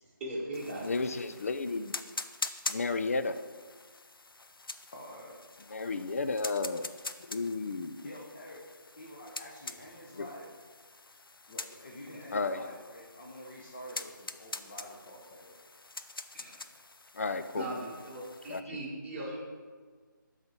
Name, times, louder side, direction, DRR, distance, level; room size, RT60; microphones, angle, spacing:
voice 1, 0.0-0.9 12.1-12.2 16.3-16.6 17.6-19.4, right 1 dB, 5° right, -9 dB, 1.3 m, -39 dB
sound 1, 0.5-18.6, left 3 dB, 90° left, 0.6 m, -44 dB
voice 2, 0.8-2.0 2.7-3.4 5.7-6.9 7.3-8.0 10.2-10.3 12.3-12.7 17.1-17.7 18.5-18.6, left 3 dB, 40° left, 11 dB, 0.5 m, -33 dB
voice 3, 4.9-5.4 8.0-8.6 9.0-10.5 11.5-15.6 19.2-19.4, equal, 25° left, -3 dB, 1.0 m, -47 dB
12.0 x 4.2 x 4.5 m, 1.5 s
figure-of-eight pair, 165°, 11 cm